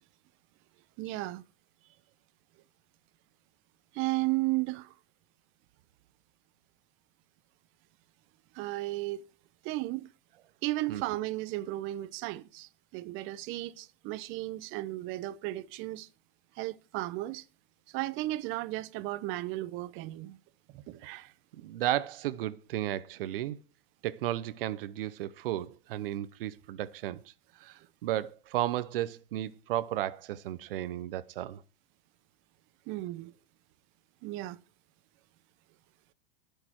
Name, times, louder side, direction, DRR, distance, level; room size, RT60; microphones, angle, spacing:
voice 1, 1.0-1.4 3.9-4.9 8.5-9.2 9.6-10.1 10.6-16.1 16.6-17.4 17.9-20.4 20.7-21.3 32.9-33.3 34.2-34.6, right 18 dB, 45° right, 1.0 m, -34 dB
voice 2, 21.5-23.6 24.0-27.2 27.6-31.6, right 13 dB, 70° right, 0.9 m, -34 dB
19.0 x 6.9 x 4.5 m
hypercardioid pair, 120°, 29 cm